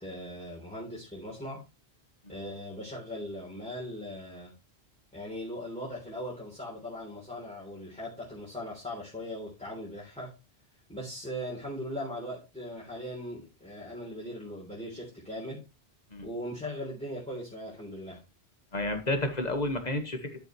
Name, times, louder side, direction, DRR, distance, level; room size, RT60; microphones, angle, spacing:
voice 1, 0.0-1.6 2.3-4.5 5.1-10.3 10.9-15.6 16.2-18.2, equal, 5° left, -6 dB, 3.4 m, -39 dB
voice 2, 18.7-20.4, left 1 dB, 40° left, 6 dB, 1.6 m, -31 dB
11.5 x 7.0 x 3.2 m, 0.27 s
omnidirectional pair, 1.1 m